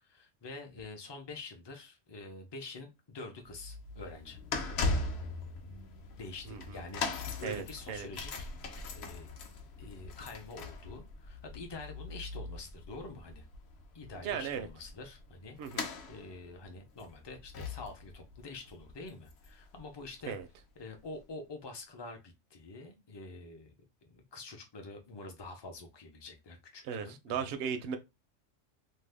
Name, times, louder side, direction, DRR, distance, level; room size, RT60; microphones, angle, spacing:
voice 1, 0.0-4.4 6.2-9.3 9.8-13.5 13.9-20.3 20.8-23.7 24.0-27.6, left 3 dB, 30° left, 0.5 m, -47 dB
sound 1, 3.4-19.8 20.0-20.3 21.1-21.2, left 3 dB, 65° left, 0.8 m, -40 dB
voice 2, 6.5-6.8 7.4-8.1 14.2-14.7 15.6-15.9 20.3-20.5 26.8-28.0, right 7 dB, 65° right, 0.7 m, -37 dB
2.7 x 2.2 x 3.3 m
omnidirectional pair, 1.3 m